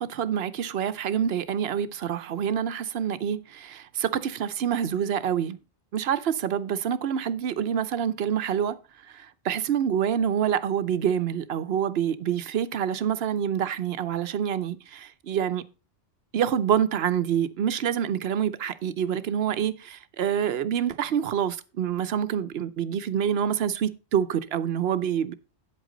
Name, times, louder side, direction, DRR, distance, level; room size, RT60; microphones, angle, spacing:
voice 1, 0.0-5.6 5.9-8.8 9.1-15.7 16.3-25.3, right 9 dB, 65° right, 0.9 m, -27 dB
9.4 x 8.1 x 3.8 m
omnidirectional pair, 1.2 m